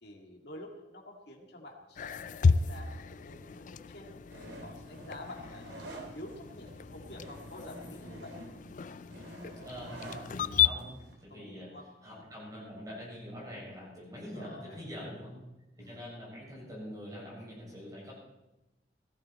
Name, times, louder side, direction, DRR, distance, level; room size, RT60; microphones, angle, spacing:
voice 1, 0.0-4.2 4.6-8.5 11.3-12.3 14.2-14.8 15.8-16.0, left 1 dB, 65° left, -1 dB, 2.2 m, -48 dB
sound 1, 2.0-10.7, left 6 dB, 45° left, 0.4 m, -33 dB
sound 2, 4.3-11.1, right 1 dB, 90° right, 3.4 m, -48 dB
voice 2, 9.6-10.9 11.2-11.7 12.0-15.4 15.8-18.1, equal, 20° right, -4 dB, 6.8 m, -44 dB
17.0 x 15.0 x 4.4 m, 0.99 s
head